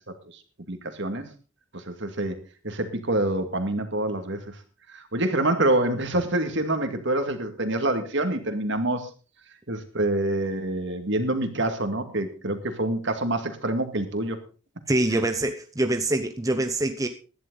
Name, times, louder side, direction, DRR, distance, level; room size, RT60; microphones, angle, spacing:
voice 1, 0.7-1.3 1.7-2.4 2.6-4.5 4.9-9.1 9.7-14.4, right 1 dB, 60° right, 2.2 m, -26 dB
voice 2, 14.9-17.1, right 1 dB, 15° right, 0.8 m, -25 dB
16.5 x 11.0 x 4.0 m
head